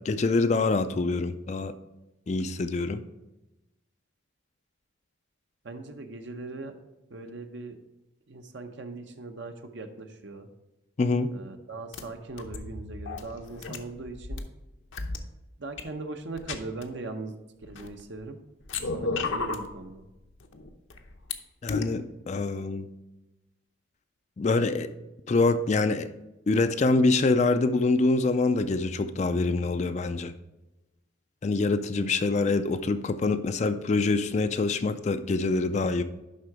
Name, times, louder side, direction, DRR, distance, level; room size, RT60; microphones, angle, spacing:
voice 1, 0.0-1.7 2.3-3.0 11.0-11.3 21.6-22.9 24.4-24.9 25.3-26.1 26.5-30.3 31.4-36.0, left 3 dB, 35° left, 0.3 m, -25 dB
voice 2, 5.6-6.8 7.1-7.8 8.3-10.5 11.3-14.4 15.6-17.3 17.6-18.4 18.9-20.0, right 3 dB, 65° right, 0.8 m, -39 dB
sound 1, 11.9-12.0 12.4-14.4 14.9-15.2 15.8-15.9 16.4-16.8 17.6-18.2 18.6-19.7 20.4-21.3 21.7-21.8, left 3 dB, 75° left, 0.8 m, -33 dB
11.0 x 3.7 x 4.8 m
head